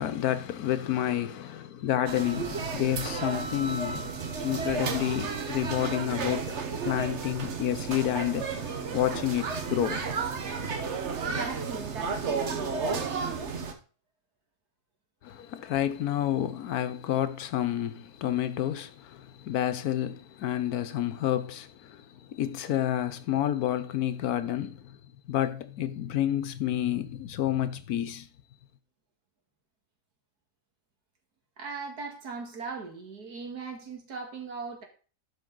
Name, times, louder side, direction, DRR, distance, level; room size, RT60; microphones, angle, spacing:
voice 1, 0.0-4.1 4.4-6.5 6.8-10.0 15.2-25.0 25.3-28.3, left 11 dB, 75° left, 1.2 m, -29 dB
sound 1, 2.1-13.7, right 5 dB, 50° right, 1.3 m, -32 dB
voice 2, 11.3-13.6 31.6-34.9, right 4 dB, 75° right, 2.4 m, -39 dB
12.0 x 5.4 x 3.9 m
omnidirectional pair, 1.7 m